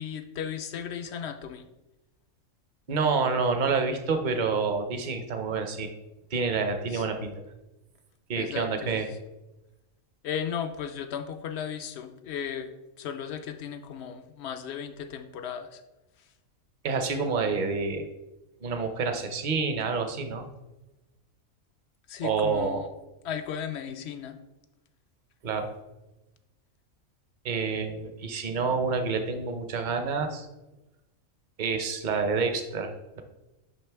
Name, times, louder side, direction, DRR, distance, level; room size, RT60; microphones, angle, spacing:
voice 1, 0.0-1.7 6.9-7.0 8.4-9.1 10.2-15.8 22.1-22.9 23.2-24.4, left 8 dB, 65° left, 8 dB, 0.7 m, -35 dB
voice 2, 2.9-5.9 6.3-7.3 8.3-9.0 16.8-18.1 18.6-20.5 22.2-22.8 25.4-25.7 27.4-30.5 31.6-32.9, right 4 dB, 45° right, 6 dB, 0.7 m, -28 dB
10.5 x 3.7 x 3.4 m, 1.0 s
omnidirectional pair, 1.5 m